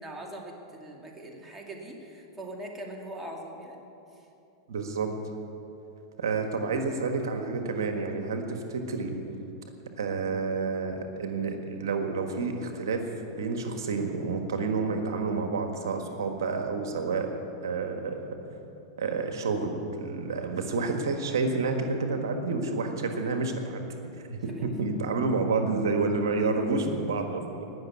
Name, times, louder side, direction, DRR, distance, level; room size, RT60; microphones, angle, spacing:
voice 1, 0.0-3.8 4.1-4.3 15.9-16.0 24.5-24.6, right 1 dB, 15° right, 0 dB, 2.4 m, -42 dB
voice 2, 4.7-5.3 6.2-9.2 10.0-17.3 17.6-18.2 19.0-23.9 24.1-27.7, right 4 dB, 80° right, 5 dB, 1.6 m, -29 dB
19.5 x 6.6 x 9.6 m, 3.0 s
hypercardioid pair, 115°, 2 cm